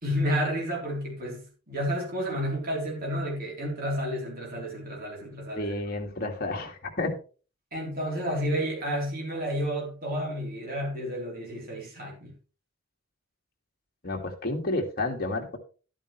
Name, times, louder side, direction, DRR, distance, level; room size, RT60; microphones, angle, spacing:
voice 1, 0.0-5.7 7.7-12.3, equal, 45° right, -2 dB, 3.5 m, -31 dB
voice 2, 5.6-7.1 14.0-15.6, left 2 dB, 45° left, 1 dB, 2.0 m, -30 dB
12.0 x 8.9 x 3.2 m, 0.35 s
head